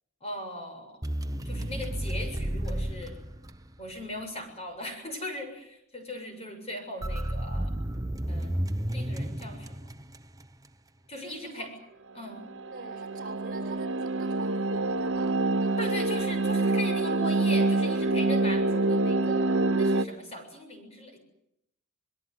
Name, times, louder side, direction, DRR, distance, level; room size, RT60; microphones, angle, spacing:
voice 1, 0.2-1.0 1.4-3.2 3.8-7.7 8.3-8.5 8.9-9.7 11.1-11.7 12.1-12.5 15.8-21.2, left 1 dB, 30° left, 5 dB, 6.9 m, -39 dB
sound 1, 1.0-4.0 7.0-10.4, right 1 dB, 20° right, 1.0 m, -32 dB
voice 2, 11.2-11.7 12.7-16.1, right 2 dB, 40° right, 6 dB, 6.8 m, -44 dB
sound 2, 12.3-20.0, right 2 dB, 70° right, 1.1 m, -26 dB
25.5 x 22.0 x 9.7 m, 0.80 s
head